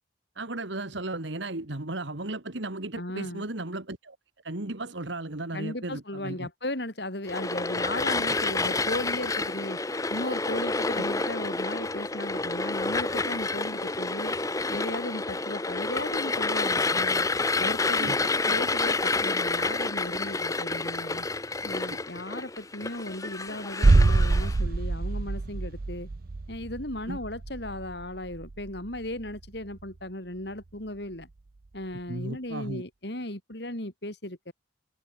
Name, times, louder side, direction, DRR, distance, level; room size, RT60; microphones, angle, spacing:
voice 1, 0.4-4.2 4.4-6.5 11.0-11.1 17.8-18.6 27.1-27.2 32.1-32.8, right 2 dB, 70° right, 2.1 m, -35 dB
voice 2, 3.0-3.4 5.5-9.8 10.1-14.4 14.7-17.3 17.6-21.3 21.6-26.1 26.5-31.3 31.7-34.5, left 1 dB, 55° left, 4.5 m, -36 dB
sound 1, 7.3-24.6, left 3 dB, 15° left, 0.9 m, -29 dB
sound 2, 23.8-29.6 29.8-29.9, right 3 dB, 50° right, 0.6 m, -25 dB
head